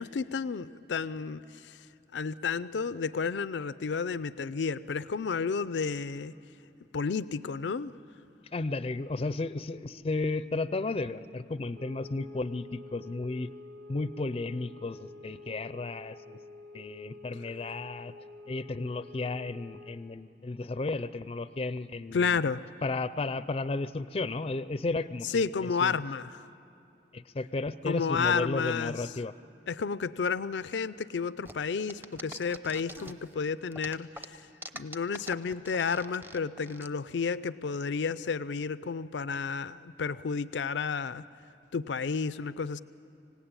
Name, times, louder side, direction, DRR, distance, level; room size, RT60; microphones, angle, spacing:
voice 1, 0.0-1.9 2.1-6.3 6.9-7.9 22.1-22.6 25.2-26.5 27.8-29.1 29.7-34.5 34.7-41.3 41.7-42.8, left 5 dB, 90° left, 16 dB, 0.5 m, -31 dB
voice 2, 8.5-13.5 13.9-16.4 16.7-18.1 18.5-22.5 22.8-26.0 27.1-29.3, left 3 dB, 35° left, 14 dB, 0.4 m, -33 dB
sound 1, 11.7-20.1, left 3 dB, 80° right, 2.4 m, -49 dB
sound 2, 31.5-33.3 33.7-36.9, right 1 dB, 10° right, 0.7 m, -44 dB
26.0 x 17.0 x 8.9 m, 2.7 s
head